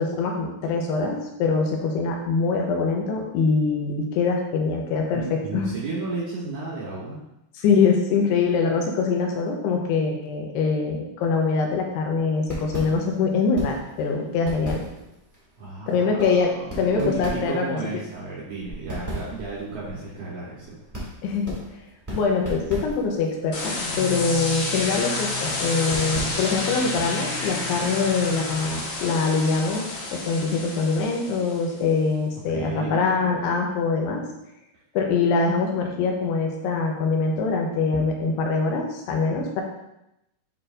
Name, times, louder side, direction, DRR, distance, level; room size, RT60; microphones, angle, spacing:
voice 1, 0.0-5.8 7.6-14.9 15.9-16.5 16.8-17.8 21.2-21.5 22.1-34.2 34.9-39.6, left 4 dB, 85° left, 1 dB, 2.8 m, -24 dB
voice 2, 5.1-7.2 15.6-20.8 32.5-33.0, right 3 dB, 70° right, -6 dB, 2.0 m, -33 dB
sound 1, 12.4-26.8, right 1 dB, 20° right, 0.4 m, -38 dB
sound 2, 23.5-31.7, left 3 dB, 65° left, 4.1 m, -30 dB
8.9 x 4.2 x 2.5 m, 0.85 s
omnidirectional pair, 4.7 m